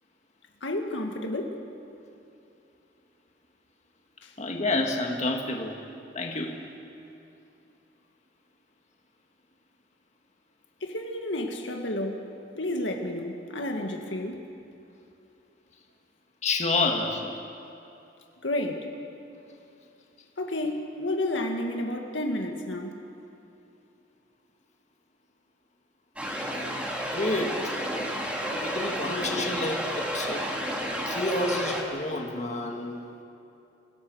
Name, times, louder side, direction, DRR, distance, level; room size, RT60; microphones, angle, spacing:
voice 1, 0.6-1.6 10.8-12.2 12.5-14.4 18.4-18.9 20.4-23.0, left 1 dB, 90° left, 3 dB, 2.0 m, -31 dB
voice 2, 4.4-5.7 6.2-6.6 16.4-17.3 27.1-27.8 28.4-30.4 31.1-33.2, left 2 dB, 40° left, 1 dB, 1.9 m, -29 dB
sound 1, 26.2-31.8, equal, 5° right, 2.6 m, -31 dB
27.5 x 17.0 x 6.4 m, 2.7 s
head